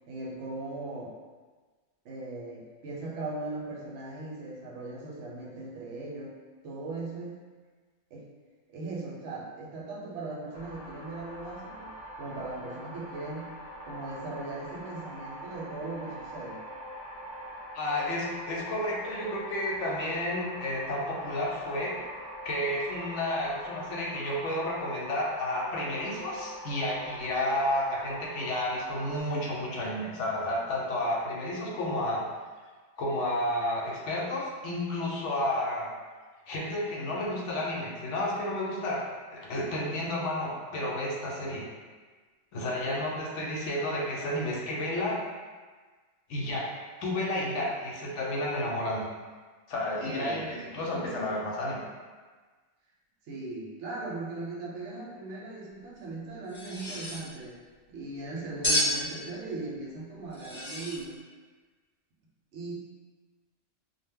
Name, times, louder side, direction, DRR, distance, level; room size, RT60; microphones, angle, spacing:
voice 1, 0.1-1.1 2.0-6.3 6.6-7.4 8.1-8.2 8.7-11.9 12.2-13.6 13.9-16.6 50.1-50.4 53.2-57.6 57.9-61.2 62.5-62.7, right 2 dB, 75° right, -4 dB, 0.9 m, -38 dB
sound 1, 10.5-29.2, equal, 45° left, 0.7 m, -43 dB
voice 2, 17.7-22.0 22.4-32.3 33.0-35.9 36.5-41.7 42.5-45.2 46.3-46.7 47.0-49.1 49.7-51.8, left 1 dB, 75° left, -3 dB, 0.9 m, -31 dB
sound 2, 56.5-57.2 58.6-59.0 60.3-61.0, left 1 dB, 10° left, 0.8 m, -30 dB
2.1 x 2.0 x 3.4 m, 1.4 s
omnidirectional pair, 1.3 m